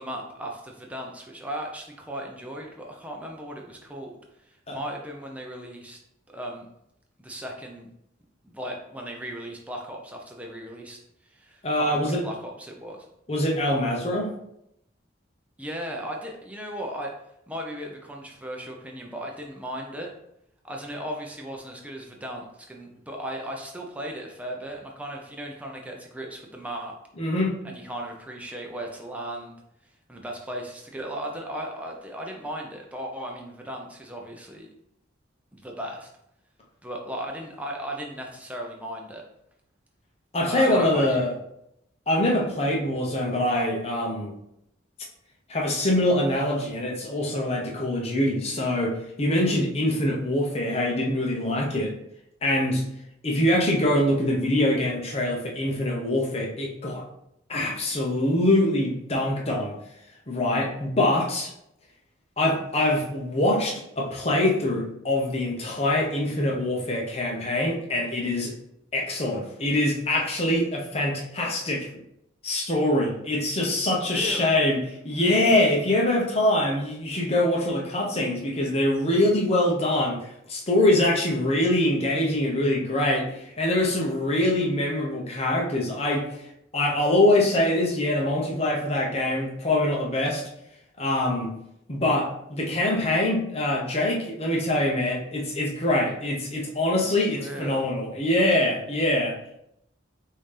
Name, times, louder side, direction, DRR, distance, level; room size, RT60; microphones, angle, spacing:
voice 1, 0.0-4.2 4.5-6.0 6.3-6.7 7.2-7.9 8.4-11.0 11.2-13.1 15.6-17.1 17.5-20.1 20.6-26.9 27.6-29.6 30.1-34.7 35.5-36.1 36.8-39.2 40.5-41.3 74.0-74.6 97.4-97.9, equal, 5° right, 0 dB, 0.6 m, -36 dB
voice 2, 11.6-12.2 13.3-14.3 27.2-27.6 40.3-41.3 42.1-44.3 45.5-51.9 52.4-52.8 53.2-57.0 57.5-59.8 60.3-61.5 62.4-68.5 68.9-71.9 72.4-74.8 75.0-86.4 86.7-90.5 91.0-91.5 91.9-99.4, left 1 dB, 30° left, -1 dB, 0.8 m, -24 dB
5.5 x 2.7 x 3.3 m, 0.78 s
head